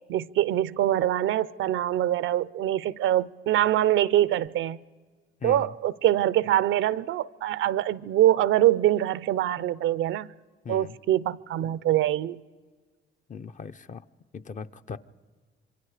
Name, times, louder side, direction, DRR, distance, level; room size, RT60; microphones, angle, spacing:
voice 1, 0.1-4.8 5.4-10.3 10.7-12.4, right 13 dB, 80° right, 0.6 m, -24 dB
voice 2, 10.6-11.0 13.3-14.0 14.3-15.0, left 5 dB, 40° left, 0.7 m, -39 dB
26.5 x 23.5 x 4.9 m
cardioid pair, 90°, 20 cm